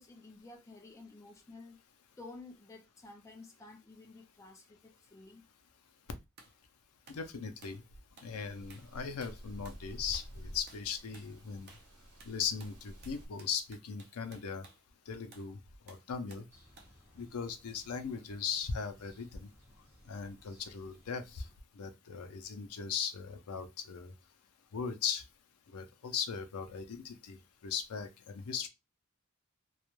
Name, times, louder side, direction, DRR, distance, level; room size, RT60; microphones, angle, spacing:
voice 1, 0.0-1.8 2.2-5.5, left 3 dB, 15° left, 0.4 m, -52 dB
sound 1, 6.4-6.6 7.1-7.3 7.6-7.9 8.2-8.4 8.7-8.9 9.2-9.8 10.1-10.4 10.7-10.9 11.1-11.3 11.7-11.9 12.2-14.8 15.3-15.5 15.9-16.5 16.8-17.0, right 3 dB, 45° right, 0.5 m, -58 dB
voice 2, 7.1-7.8 8.2-11.7 12.3-14.6 15.1-15.6 15.9-16.4 17.2-19.5 20.1-21.4 21.8-24.1 24.7-25.2 25.7-27.4 27.6-28.1 28.3-28.7, left 6 dB, 80° left, 0.5 m, -38 dB
sound 2, 8.3-13.3, equal, 80° right, 0.9 m, -50 dB
sound 3, 16.5-21.6, equal, 10° right, 1.0 m, -61 dB
2.3 x 2.1 x 3.0 m
head